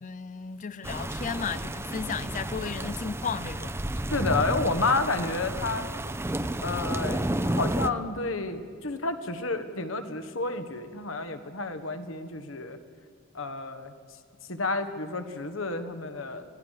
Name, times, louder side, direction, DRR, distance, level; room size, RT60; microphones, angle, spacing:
voice 1, 0.0-3.8, left 6 dB, 40° left, 0.5 m, -34 dB
sound 1, 0.8-7.9, right 1 dB, 15° right, 0.6 m, -31 dB
voice 2, 4.1-5.9 6.6-12.8 13.3-13.9 14.5-16.4, left 3 dB, 80° left, 1.6 m, -30 dB
27.0 x 17.0 x 6.6 m
head